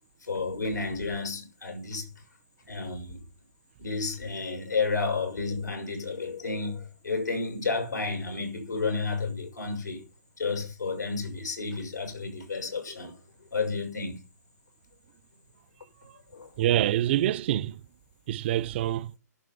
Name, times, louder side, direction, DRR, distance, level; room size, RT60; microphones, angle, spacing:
voice 1, 0.3-2.1 2.7-3.2 3.8-10.0 10.4-13.1 13.5-14.2 16.3-16.5, left 4 dB, 85° left, 6.3 m, -31 dB
voice 2, 16.6-17.8 18.3-19.1, right 12 dB, 40° right, 0.5 m, -26 dB
11.0 x 7.6 x 5.4 m
figure-of-eight pair, 135°, 9 cm